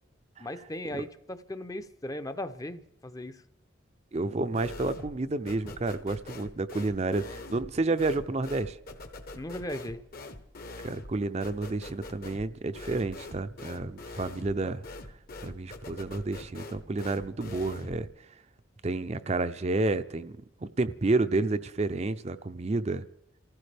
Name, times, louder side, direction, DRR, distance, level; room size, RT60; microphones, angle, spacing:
voice 1, 0.4-3.4 9.4-10.0, left 1 dB, 15° left, 10 dB, 0.6 m, -37 dB
voice 2, 4.1-8.8 10.8-14.8 15.4-18.1 18.8-23.0, right 2 dB, 35° right, 11 dB, 0.5 m, -30 dB
sound 1, 4.5-5.2 5.5-18.1, left 2 dB, 45° left, 1.0 m, -44 dB
27.5 x 15.0 x 3.4 m, 0.79 s
head